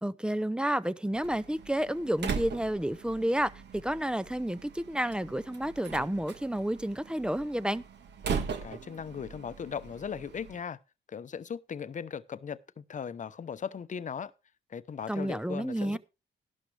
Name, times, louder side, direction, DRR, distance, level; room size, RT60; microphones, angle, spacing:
voice 1, 0.0-7.8 15.1-16.0, right 1 dB, 5° right, 0.6 m, -30 dB
Slam, 1.2-10.6, right 5 dB, 60° right, 1.7 m, -40 dB
voice 2, 8.6-10.8 11.1-14.3 14.7-16.0, left 7 dB, 40° left, 0.8 m, -38 dB
13.0 x 11.5 x 3.3 m
cardioid pair, 90°, 20 cm